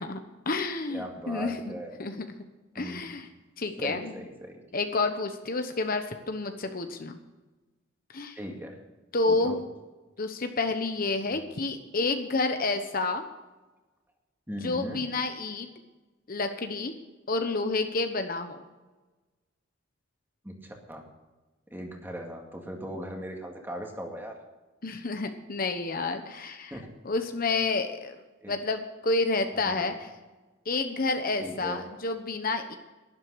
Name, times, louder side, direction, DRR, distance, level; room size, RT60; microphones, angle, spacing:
voice 1, 0.0-1.7 2.0-2.3 2.7-3.3 3.6-4.1 4.7-7.2 8.1-8.4 9.1-9.6 10.2-13.3 14.6-15.7 16.3-16.9 17.3-18.6 24.8-26.7 27.0-28.2 28.5-30.1 30.6-32.8, left 3 dB, 45° left, 7 dB, 1.0 m, -29 dB
voice 2, 0.9-1.9 2.8-3.1 3.8-4.6 8.4-8.8 9.3-9.6 11.3-11.4 14.5-15.0 20.4-21.0 21.7-24.3 26.7-26.9 28.4-28.6 29.7-29.8 31.4-31.9, equal, 10° right, 1 dB, 2.1 m, -39 dB
11.5 x 11.0 x 6.2 m, 1.2 s
head